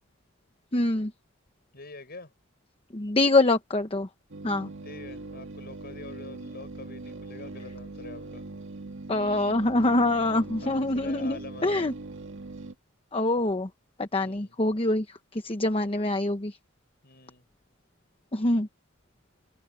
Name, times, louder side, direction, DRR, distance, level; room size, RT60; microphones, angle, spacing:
voice 1, 0.7-1.1 2.9-4.1 4.4-4.7 9.1-11.4 11.6-11.9 13.1-13.7 14.0-15.0 15.3-16.6 18.3-18.7, left 2 dB, 25° left, 1.0 m, -25 dB
voice 2, 1.7-2.3 4.8-8.4 9.3-9.4 10.1-10.2 10.6-11.9 14.1-14.6 17.0-17.4, left 3 dB, 45° left, 6.4 m, -45 dB
sound 1, 4.3-12.7, right 2 dB, 60° right, 1.9 m, -41 dB
open air
head